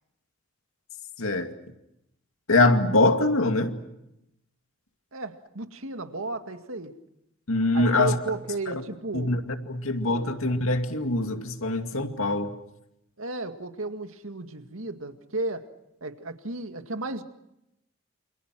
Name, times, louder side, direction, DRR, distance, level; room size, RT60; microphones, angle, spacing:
voice 1, 1.2-1.5 2.5-3.8 7.5-8.2 8.7-8.8 9.1-12.5, left 2 dB, 75° left, 2.4 m, -23 dB
voice 2, 5.1-7.0 7.7-9.3 10.0-10.3 13.2-15.7 16.0-17.2, right 2 dB, 75° right, 2.1 m, -34 dB
28.5 x 28.0 x 6.2 m
head